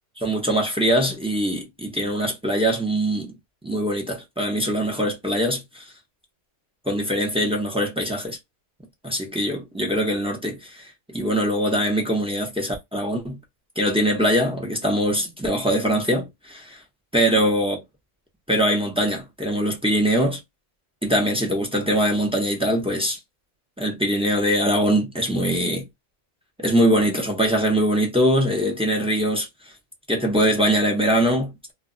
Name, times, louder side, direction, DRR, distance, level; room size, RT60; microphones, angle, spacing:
voice 1, 0.2-3.3 3.6-5.8 6.9-8.4 9.0-13.4 13.8-16.8 17.1-17.8 18.5-20.4 21.0-23.2 23.8-25.9 26.6-29.5 30.1-31.7, equal, 10° right, 0.4 m, -22 dB
2.2 x 2.1 x 3.7 m
omnidirectional pair, 1.3 m